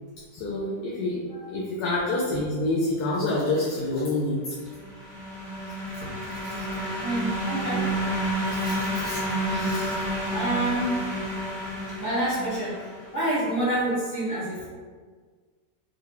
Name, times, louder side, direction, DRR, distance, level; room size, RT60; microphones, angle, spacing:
voice 1, 0.3-1.2 1.5-4.5 6.0-6.1 6.4-6.5 8.5-9.2 9.5-10.0, left 2 dB, 80° left, -6 dB, 1.1 m, -28 dB
sound 1, 4.6-13.3, right 1 dB, 20° right, 1.0 m, -30 dB
voice 2, 7.0-7.9 10.3-11.0 12.0-12.9 13.1-14.7, right 1 dB, 15° left, -10 dB, 1.0 m, -27 dB
3.8 x 2.3 x 2.9 m, 1.6 s
omnidirectional pair, 1.7 m